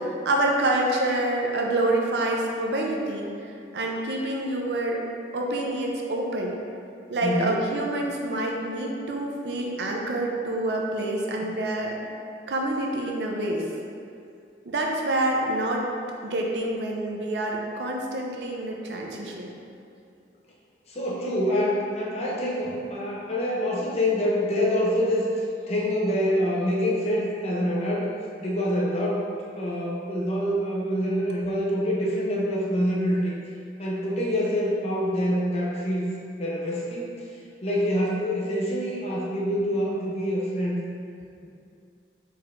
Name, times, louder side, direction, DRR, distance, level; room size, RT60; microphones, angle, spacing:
voice 1, 0.3-3.3 3.7-5.0 5.3-6.6 7.1-11.9 12.5-13.6 14.7-15.9 16.2-19.5, right 1 dB, 65° right, 0 dB, 0.5 m, -27 dB
voice 2, 7.2-7.7 20.9-25.2 25.7-28.1 28.4-29.2 29.6-33.4 33.8-36.1 36.4-37.1 37.6-40.8, equal, 35° left, -4 dB, 0.6 m, -26 dB
4.4 x 4.1 x 2.5 m, 2.4 s
head